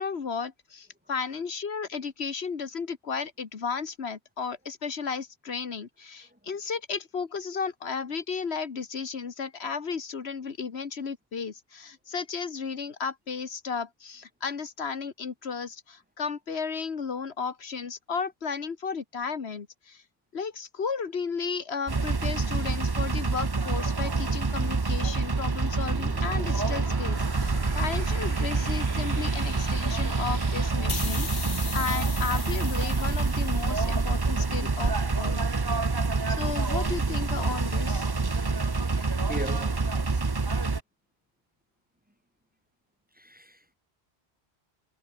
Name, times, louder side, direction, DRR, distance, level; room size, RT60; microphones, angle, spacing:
voice 1, 0.0-20.0 20.3-35.4 36.3-38.1 40.1-40.2, left 5 dB, 75° left, 1.7 m, -34 dB
sound 1, 21.9-40.8, right 3 dB, 25° right, 0.8 m, -27 dB
sound 2, 25.7-30.7, right 2 dB, 75° right, 5.7 m, -43 dB
sound 3, 30.9-34.3, left 4 dB, 50° left, 1.8 m, -38 dB
voice 2, 38.8-40.1 43.1-43.7, equal, 10° right, 3.0 m, -40 dB
omnidirectional pair, 1.1 m